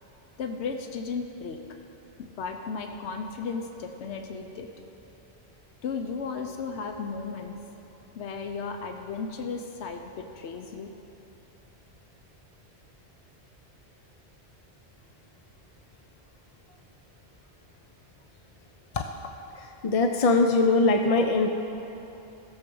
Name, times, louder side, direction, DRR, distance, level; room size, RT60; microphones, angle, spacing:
voice 1, 0.4-1.6 2.2-4.7 5.8-7.6 8.2-10.9, left 5 dB, 80° left, 5 dB, 1.0 m, -35 dB
voice 2, 19.8-21.5, left 3 dB, 50° left, 4 dB, 0.5 m, -21 dB
14.5 x 7.2 x 5.4 m, 2.9 s
omnidirectional pair, 1.1 m